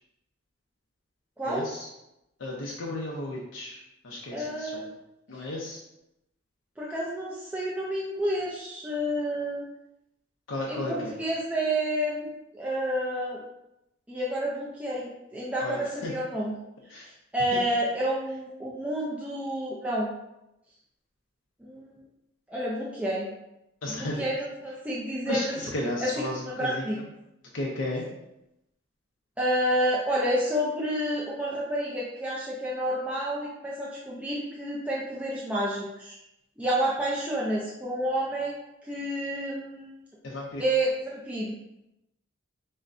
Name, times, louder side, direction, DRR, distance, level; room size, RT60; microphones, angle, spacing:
voice 1, 1.4-1.9 2.4-4.9 5.3-5.8 10.5-11.2 15.6-16.1 16.9-17.1 23.8-24.3 25.3-27.0 27.5-28.1 40.2-40.6, left 1 dB, 70° left, -2 dB, 0.6 m, -34 dB
voice 2, 4.3-4.9 5.3-5.4 6.8-9.6 10.7-13.4 14.1-16.5 17.0-20.1 21.6-21.9 22.5-23.3 24.0-25.6 26.0-26.1 26.6-27.0 29.4-36.1 36.6-38.6 38.8-40.0 40.6-41.6, right 1 dB, 5° right, -6 dB, 0.4 m, -29 dB
6.1 x 2.2 x 2.5 m, 0.88 s
head